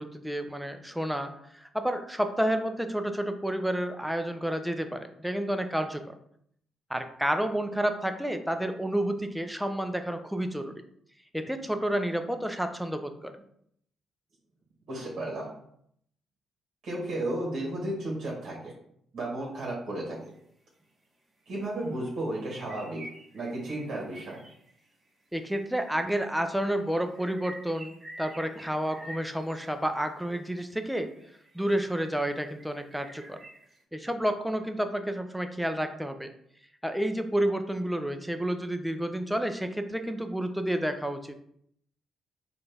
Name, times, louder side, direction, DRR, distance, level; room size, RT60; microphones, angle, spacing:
voice 1, 0.0-6.1 6.9-10.7 11.3-13.3 25.3-31.1 31.5-33.4 33.9-36.3 36.8-41.3, right 1 dB, ahead, 7 dB, 0.4 m, -30 dB
voice 2, 14.9-15.5 16.8-18.7 19.1-20.2 21.5-23.1 23.3-24.4, right 1 dB, 55° right, -3 dB, 1.2 m, -33 dB
sound 1, 20.2-20.3 20.8-20.9 21.5-21.6 21.9-22.0 22.3-25.1 25.9-26.0 26.3-29.9 30.6-32.1 32.6-33.8, right 1 dB, 25° right, 1.2 m, -48 dB
4.2 x 2.4 x 3.3 m, 0.70 s
cardioid pair, 90°, 0 cm